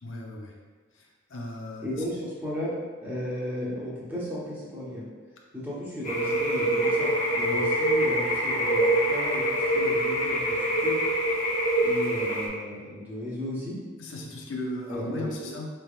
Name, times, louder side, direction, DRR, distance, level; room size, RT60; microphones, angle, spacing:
voice 1, 0.0-0.5 0.9-1.9 7.5-7.7 14.0-15.7, left 1 dB, 85° left, 0 dB, 0.5 m, -37 dB
voice 2, 1.8-2.7 3.0-5.1 5.5-11.0 11.8-13.8 14.9-15.5, equal, 10° right, -7 dB, 0.9 m, -34 dB
sound 1, 6.0-12.5, right 1 dB, 45° left, 0.7 m, -25 dB
4.3 x 3.4 x 2.4 m, 1.4 s
head